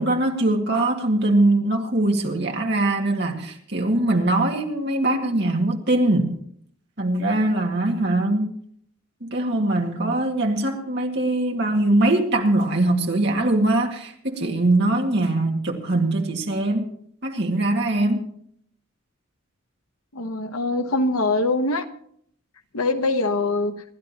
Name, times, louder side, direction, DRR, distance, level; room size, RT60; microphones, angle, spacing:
voice 1, 0.0-6.4 7.0-8.5 9.2-16.8 17.2-18.3, right 2 dB, 50° right, 2.0 m, -22 dB
voice 2, 20.1-21.9 22.7-23.7, left 2 dB, 85° left, 1.2 m, -23 dB
27.5 x 12.0 x 2.9 m
head